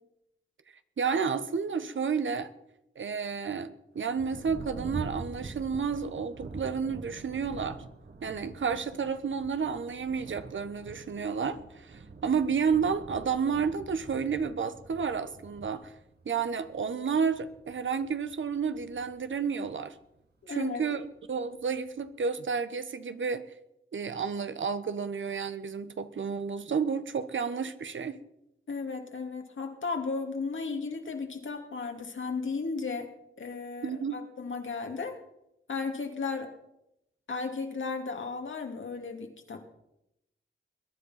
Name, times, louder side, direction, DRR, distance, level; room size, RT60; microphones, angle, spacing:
voice 1, 1.0-2.5 3.0-7.8 8.2-15.9 16.2-19.9 20.5-23.5 23.9-28.2 33.8-34.2, right 6 dB, 65° right, 1.2 m, -31 dB
Thunder, 4.2-20.2 21.0-21.1 21.6-22.1, right 3 dB, 50° right, 1.7 m, -45 dB
voice 2, 20.4-20.8 28.7-33.1 33.4-35.2 35.7-36.5 37.3-39.6, left 4 dB, 70° left, 2.5 m, -35 dB
21.5 x 10.5 x 5.8 m
cardioid pair, 45°, 21 cm